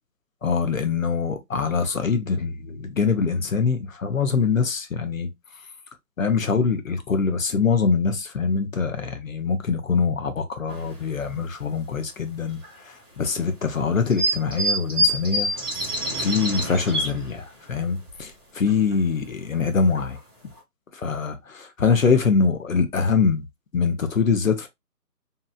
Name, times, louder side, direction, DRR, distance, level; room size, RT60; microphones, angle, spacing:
voice 1, 0.4-5.3 6.2-15.5 16.2-20.2 20.9-23.4 23.7-24.7, left 5 dB, 55° left, 0.6 m, -24 dB
sound 1, 10.7-11.0 11.5-11.6 12.6-12.7 14.1-17.3 17.7-17.8 18.1-18.2 18.7-18.9 19.5-19.6 19.9-20.2 20.6-20.7, equal, 15° right, 0.7 m, -25 dB
2.8 x 2.3 x 2.3 m
figure-of-eight pair, 160°, 49 cm